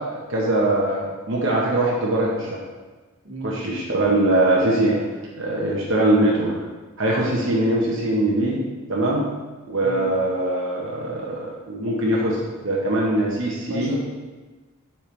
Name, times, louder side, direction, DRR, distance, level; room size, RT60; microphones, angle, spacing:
voice 1, 0.0-2.6 3.4-5.0 5.4-6.5 7.0-8.6 8.9-9.2 9.7-13.9, right 1 dB, 65° right, -4 dB, 0.9 m, -22 dB
voice 2, 3.2-3.8 9.8-10.1 13.6-14.0, right 1 dB, 80° right, -3 dB, 1.6 m, -35 dB
6.9 x 4.5 x 3.2 m, 1.3 s
head